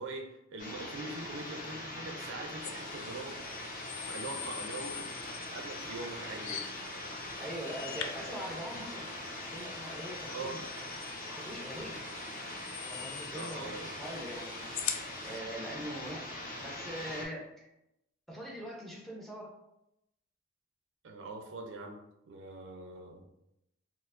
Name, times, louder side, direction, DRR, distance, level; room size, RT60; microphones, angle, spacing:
voice 1, 0.0-3.4 4.0-6.6 10.3-10.6 13.2-13.9 21.0-22.0 22.3-23.2, right 3 dB, 55° right, 2 dB, 0.4 m, -43 dB
sound 1, 0.6-17.3, left 1 dB, 40° left, 0.7 m, -42 dB
sound 2, 2.6-15.4, left 9 dB, 70° left, 0.3 m, -44 dB
voice 2, 7.4-9.1 9.5-10.6 11.2-12.0 12.8-14.7 15.2-16.3 16.6-17.7 18.3-19.5, equal, ahead, -2 dB, 0.5 m, -42 dB
4.3 x 2.0 x 2.4 m, 0.84 s
head